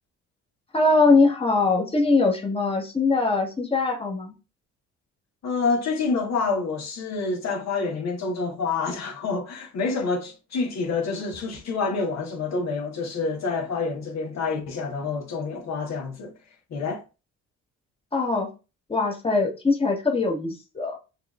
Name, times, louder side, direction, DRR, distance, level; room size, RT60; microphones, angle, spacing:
voice 1, 0.7-4.3 18.1-18.5 18.9-21.0, left 3 dB, 20° left, 1.1 m, -22 dB
voice 2, 5.4-16.3 16.7-17.0, left 4 dB, 60° left, 1.0 m, -27 dB
6.0 x 2.4 x 2.3 m
cardioid pair, 90°, 30 cm